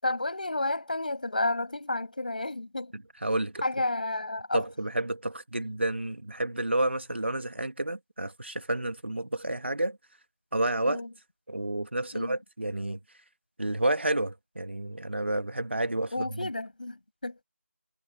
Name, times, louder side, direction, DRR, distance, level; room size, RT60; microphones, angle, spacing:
voice 1, 0.0-2.9 3.6-4.6 10.9-11.1 12.1-12.4 16.1-17.4, left 2 dB, 35° left, 7.2 m, -31 dB
voice 2, 3.2-3.6 4.5-10.0 10.5-11.0 11.5-13.0 13.6-16.2, right 1 dB, 50° right, 2.1 m, -30 dB
figure-of-eight pair, 175°, 8 cm